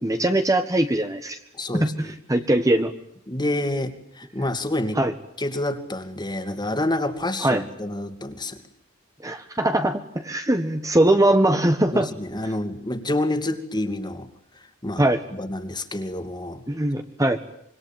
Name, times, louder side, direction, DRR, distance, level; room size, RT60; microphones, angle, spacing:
voice 1, 0.0-1.4 1.7-2.9 5.0-5.1 7.4-7.6 9.2-12.1 15.0-15.2 16.7-17.4, right 1 dB, 15° right, 7 dB, 1.5 m, -21 dB
voice 2, 1.5-2.1 3.3-5.0 5.4-8.6 11.9-14.3 14.6-15.0 15.3-16.6, left 1 dB, 20° left, 8 dB, 2.7 m, -28 dB
26.0 x 24.5 x 9.1 m, 0.70 s
head